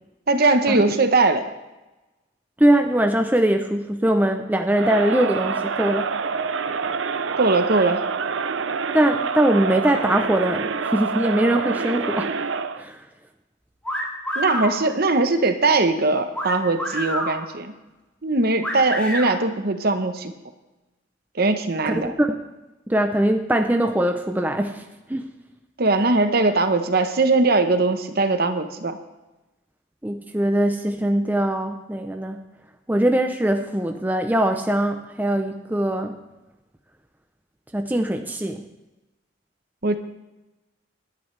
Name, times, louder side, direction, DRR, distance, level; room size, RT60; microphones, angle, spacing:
voice 1, 0.3-1.4 7.4-8.0 14.3-17.7 18.2-20.3 21.3-22.1 25.8-29.0 39.8-39.9, right 3 dB, 50° right, 8 dB, 0.9 m, -20 dB
voice 2, 2.6-6.1 8.9-12.3 12.8-13.0 21.9-22.4 22.9-24.8 25.1-25.3 30.0-32.4 32.9-36.1 37.7-38.6, right 1 dB, 10° right, 5 dB, 0.5 m, -21 dB
Crowd, 4.7-12.8, right 5 dB, 70° right, 0.6 m, -27 dB
sound 1, 13.8-14.8 16.3-17.4 18.6-19.3, equal, 5° left, 2.0 m, -27 dB
18.0 x 10.5 x 3.3 m, 1.0 s
head